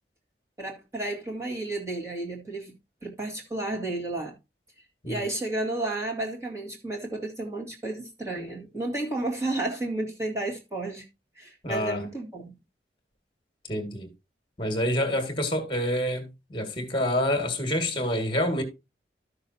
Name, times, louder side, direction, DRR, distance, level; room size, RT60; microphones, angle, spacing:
voice 1, 0.6-2.8 3.0-4.3 5.1-11.1 11.4-12.5, right 2 dB, 15° right, 2.1 m, -32 dB
voice 2, 11.6-12.1 13.7-14.1 14.6-18.6, left 1 dB, 30° left, 2.0 m, -27 dB
13.0 x 6.4 x 2.8 m
head